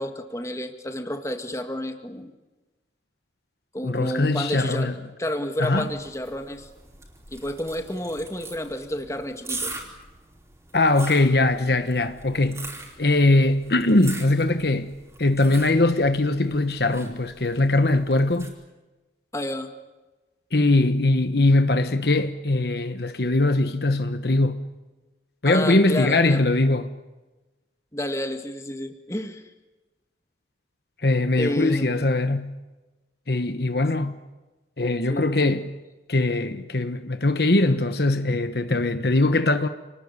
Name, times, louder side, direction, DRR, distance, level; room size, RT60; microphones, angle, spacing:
voice 1, 0.0-2.3 3.7-4.9 5.2-6.7 7.3-9.7 19.3-19.7 25.5-26.5 27.9-29.4 31.4-32.0 34.0-34.1 35.1-35.6, left 1 dB, 15° left, 2.1 m, -30 dB
voice 2, 3.8-4.9 5.6-5.9 10.7-12.7 13.0-14.9 15.2-18.5 20.5-24.6 25.4-26.9 31.0-32.5 33.3-34.2 34.8-35.7 36.1-39.7, left 2 dB, 60° left, 1.2 m, -21 dB
sound 1, 5.6-18.5, right 3 dB, 15° right, 4.4 m, -41 dB
29.5 x 20.0 x 9.8 m
head